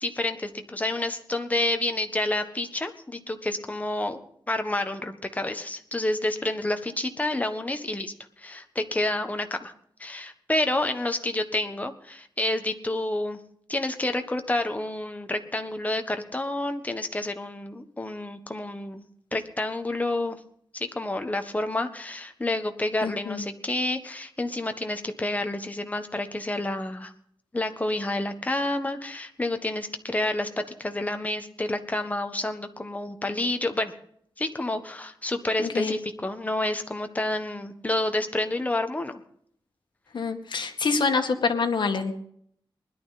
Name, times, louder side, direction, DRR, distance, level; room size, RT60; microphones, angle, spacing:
voice 1, 0.0-4.2 4.5-9.7 10.0-13.4 13.7-19.1 19.3-20.4 20.7-27.1 27.5-33.9 34.4-39.2, left 2 dB, 15° left, 7 dB, 1.4 m, -29 dB
voice 2, 23.0-23.4 35.6-35.9 40.1-42.2, left 4 dB, 60° left, 5 dB, 2.0 m, -26 dB
20.5 x 12.0 x 4.2 m, 0.65 s
wide cardioid pair, 150°, 9 cm